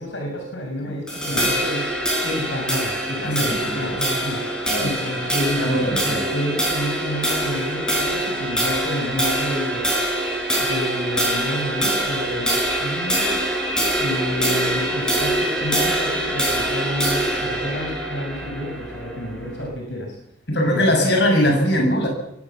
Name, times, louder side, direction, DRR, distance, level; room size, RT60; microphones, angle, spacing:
voice 1, 0.0-1.9 2.2-4.4 4.8-9.8 10.5-13.3 14.0-20.2 20.6-21.1, equal, 80° left, 1 dB, 6.1 m, -29 dB
sound 1, 1.1-19.7, right 1 dB, 5° left, 6.5 m, -24 dB
voice 2, 3.2-4.0 4.7-4.9 5.6-6.2 20.5-22.1, equal, 60° left, 3 dB, 7.4 m, -21 dB
22.5 x 17.5 x 7.4 m, 0.82 s
head